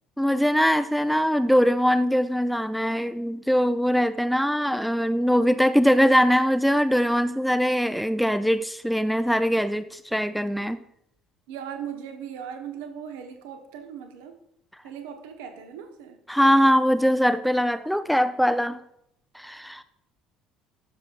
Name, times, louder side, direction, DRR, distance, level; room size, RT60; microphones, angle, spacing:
voice 1, 0.2-10.8 16.3-18.8 19.3-19.8, equal, ahead, 12 dB, 0.4 m, -22 dB
voice 2, 11.5-14.4 14.8-16.2, right 8 dB, 65° right, 5 dB, 1.0 m, -38 dB
12.5 x 6.9 x 2.5 m, 0.73 s
figure-of-eight pair, 55°, 0 cm